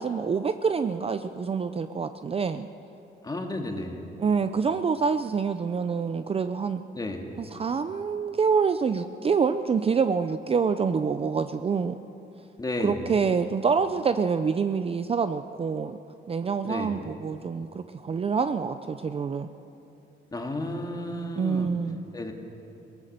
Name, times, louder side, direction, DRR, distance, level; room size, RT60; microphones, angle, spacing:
voice 1, 0.0-2.7 4.2-6.8 7.4-12.0 12.8-16.0 16.3-19.5 21.4-22.0, right 5 dB, 30° right, 10 dB, 0.5 m, -26 dB
voice 2, 3.2-4.0 7.0-7.3 12.6-13.1 16.6-17.0 20.3-21.7 22.1-22.3, left 1 dB, 20° left, 2 dB, 2.1 m, -32 dB
22.0 x 18.0 x 6.7 m, 2.9 s
cardioid pair, 125°, 19 cm